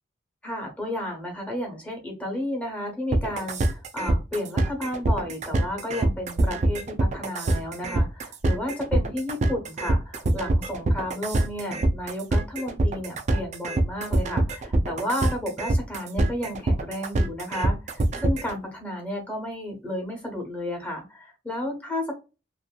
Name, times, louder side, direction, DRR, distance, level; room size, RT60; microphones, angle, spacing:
voice 1, 0.4-22.1, left 1 dB, 10° left, 1 dB, 0.9 m, -32 dB
sound 1, 3.1-18.5, right 1 dB, 35° right, 0.4 m, -24 dB
2.6 x 2.6 x 2.2 m, 0.28 s
head